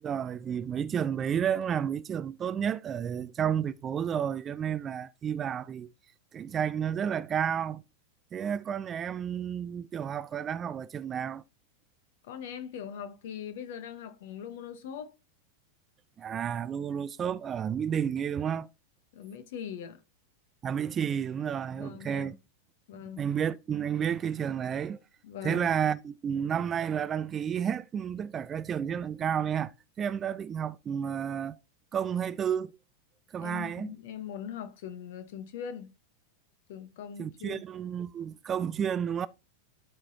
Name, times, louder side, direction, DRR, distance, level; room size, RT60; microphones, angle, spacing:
voice 1, 0.0-5.9 6.3-7.8 8.3-11.4 16.2-18.7 20.6-22.4 22.9-25.0 25.4-29.7 30.0-31.6 31.9-32.7 33.3-33.9 37.2-39.3, right 8 dB, 25° right, 0.4 m, -31 dB
voice 2, 12.2-15.2 19.1-20.0 21.7-22.4 22.9-23.3 25.2-25.7 33.4-35.9 36.7-37.6, left 8 dB, 55° left, 1.3 m, -41 dB
12.5 x 4.4 x 2.8 m
figure-of-eight pair, 90°, 0 cm